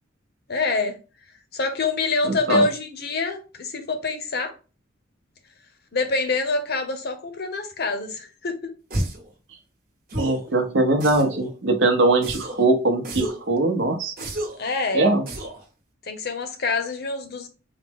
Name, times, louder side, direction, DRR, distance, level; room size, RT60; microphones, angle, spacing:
voice 1, 0.5-0.9 1.5-4.5 5.9-8.7 14.6-15.1 16.0-17.5, left 3 dB, 50° left, 0.7 m, -26 dB
voice 2, 2.2-2.7 10.2-14.1 14.9-15.3, right 2 dB, 70° right, 0.7 m, -21 dB
sound 1, 8.9-9.3 10.1-10.5 11.0-11.5 12.2-12.7 13.0-13.5 14.2-14.7 15.3-15.6, right 1 dB, 45° right, 1.1 m, -31 dB
4.0 x 2.0 x 3.5 m
head